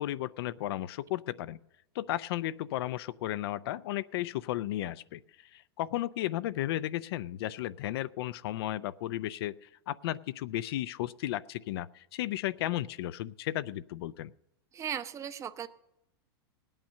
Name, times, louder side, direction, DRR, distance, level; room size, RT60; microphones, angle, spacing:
voice 1, 0.0-1.6 1.9-14.3, left 14 dB, 70° left, 15 dB, 0.5 m, -34 dB
voice 2, 14.7-15.7, right 8 dB, 20° right, 13 dB, 0.7 m, -37 dB
18.0 x 8.9 x 6.5 m, 0.87 s
supercardioid pair, 135°, 13 cm